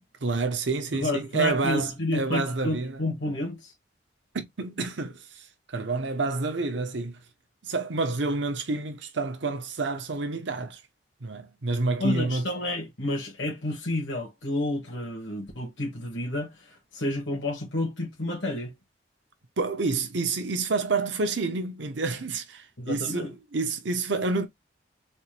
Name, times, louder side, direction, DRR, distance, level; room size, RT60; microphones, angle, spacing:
voice 1, 0.2-3.0 4.3-7.2 7.6-10.8 11.2-12.5 19.6-24.5, right 3 dB, 75° right, 0.8 m, -29 dB
voice 2, 1.0-3.7 12.0-18.7 22.8-23.3, left 1 dB, 80° left, 1.6 m, -30 dB
4.2 x 2.5 x 3.3 m
head